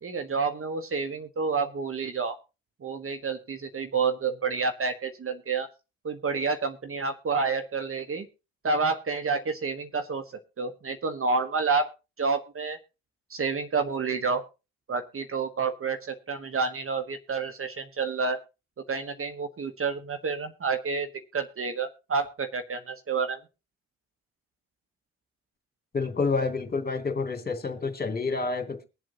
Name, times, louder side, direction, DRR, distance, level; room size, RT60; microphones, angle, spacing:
voice 1, 0.0-2.4 2.8-5.7 6.0-8.3 8.6-10.2 10.6-11.9 12.2-12.8 13.3-14.4 14.9-18.4 18.9-21.1 21.3-23.4, right 4 dB, 40° right, 1.3 m, -29 dB
voice 2, 25.9-28.8, left 4 dB, 25° left, 2.4 m, -28 dB
22.5 x 7.6 x 2.8 m
hypercardioid pair, 40°, 34 cm